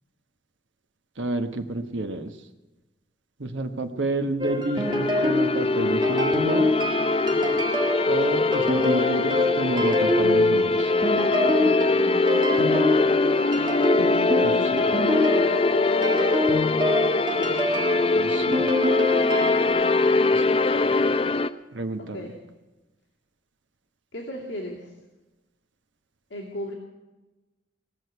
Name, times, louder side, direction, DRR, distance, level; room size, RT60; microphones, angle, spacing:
voice 1, 1.2-2.3 3.4-6.7 8.1-10.9 14.4-14.9 18.1-18.7 20.3-20.4 21.7-22.3, right 2 dB, 80° right, 7 dB, 1.2 m, -30 dB
sound 1, 4.4-19.7, left 1 dB, 25° right, 1.6 m, -27 dB
sound 2, 4.8-21.5, left 3 dB, 30° left, 0.4 m, -22 dB
voice 2, 11.2-13.1 14.1-16.6 22.0-22.3 24.1-24.9 26.3-26.7, left 1 dB, 75° left, -3 dB, 2.5 m, -36 dB
19.0 x 6.4 x 9.3 m, 1.1 s
head